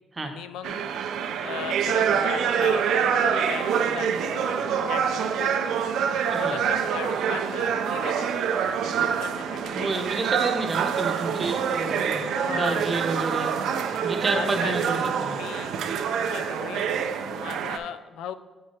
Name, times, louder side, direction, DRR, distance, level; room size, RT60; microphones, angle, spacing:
voice 1, 0.2-0.9 1.4-4.5 4.9-5.7 6.3-8.3 8.8-10.0 12.3-12.9 14.3-15.7 16.3-17.0 17.4-18.3, left 9 dB, 90° left, 12 dB, 0.3 m, -37 dB
sound 1, 0.6-17.8, right 7 dB, 80° right, 0.5 m, -26 dB
voice 2, 6.3-6.6 9.7-13.6 14.0-15.4, right 3 dB, 30° right, 5 dB, 0.9 m, -30 dB
8.4 x 4.7 x 4.3 m, 1.3 s
cardioid pair, 90°, 0 cm